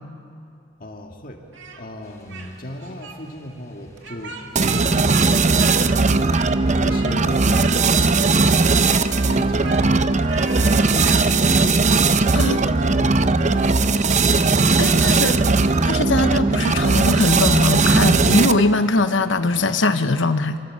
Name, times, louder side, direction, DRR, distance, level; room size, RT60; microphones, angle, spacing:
voice 1, 0.8-1.4 1.7-8.3 9.1-9.9 10.6-11.8 12.4-13.7 16.1-16.3, left 1 dB, 45° left, 3 dB, 2.0 m, -36 dB
Speech, 1.5-2.5 2.8-3.2 4.0-5.3 5.6-6.6 6.9-7.2 7.5-8.1 8.5-11.2, right 3 dB, 70° right, 2.4 m, -37 dB
sound 1, 2.0-19.8, equal, 15° left, 4.1 m, -44 dB
sound 2, 4.6-18.8, right 3 dB, 40° right, 0.7 m, -18 dB
voice 2, 14.8-15.4 15.8-20.6, left 3 dB, 70° left, 10 dB, 1.1 m, -21 dB
26.0 x 25.5 x 7.6 m, 2.6 s
head